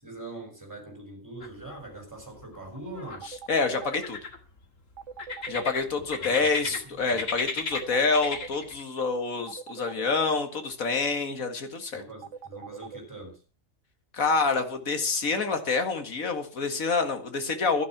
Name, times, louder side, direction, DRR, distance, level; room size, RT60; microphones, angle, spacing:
voice 1, 0.0-3.3 5.9-7.2 11.9-13.4, right 2 dB, 15° right, 2 dB, 6.1 m, -43 dB
sound 1, 1.4-2.0 2.2-3.2 3.8-4.6 5.2-6.8 7.1-8.8, left 4 dB, 70° left, 2.4 m, -34 dB
sound 2, 3.2-4.0 5.0-5.7 7.7-8.5 9.5-10.2 12.2-13.0, right 7 dB, 65° right, 1.2 m, -41 dB
voice 2, 3.3-4.2 5.5-12.0 14.1-17.9, left 4 dB, 85° left, 7 dB, 2.2 m, -27 dB
12.0 x 11.0 x 5.9 m, 0.36 s
omnidirectional pair, 1.4 m